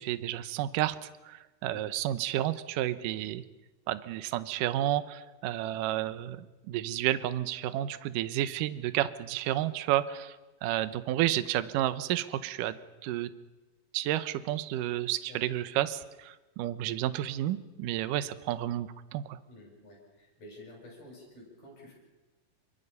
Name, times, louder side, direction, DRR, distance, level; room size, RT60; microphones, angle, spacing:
voice 1, 0.0-3.4 3.9-10.4 10.6-12.8 13.0-13.3 13.9-19.4, right 13 dB, 75° right, 12 dB, 2.3 m, -31 dB
voice 2, 19.5-21.9, left 1 dB, 50° left, -3 dB, 8.0 m, -51 dB
27.5 x 23.5 x 5.5 m, 1.2 s
omnidirectional pair, 4.2 m